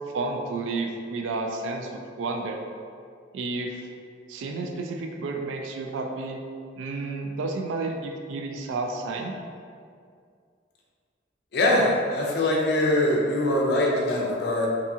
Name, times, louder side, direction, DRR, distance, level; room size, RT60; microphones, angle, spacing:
voice 1, 0.1-2.6 3.3-3.8 4.3-6.4 6.8-9.3, right 3 dB, 80° right, 3 dB, 0.3 m, -31 dB
voice 2, 11.5-14.7, left 1 dB, 60° left, -2 dB, 0.5 m, -23 dB
2.6 x 2.4 x 2.7 m, 2.2 s
head